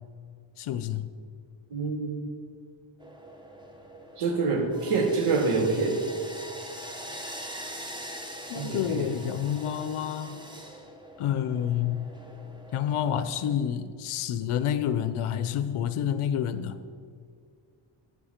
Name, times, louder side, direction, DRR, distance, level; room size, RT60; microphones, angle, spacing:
voice 1, 0.6-1.1 8.5-10.4 11.2-12.1 12.7-16.8, left 9 dB, 85° left, 11 dB, 0.6 m, -28 dB
voice 2, 1.7-2.2 4.2-6.0 8.6-9.1, right 4 dB, 90° right, 4 dB, 1.3 m, -26 dB
sound 1, 3.0-13.6, equal, 10° right, 0.7 m, -43 dB
8.1 x 7.2 x 5.0 m, 2.2 s
wide cardioid pair, 140°, 49 cm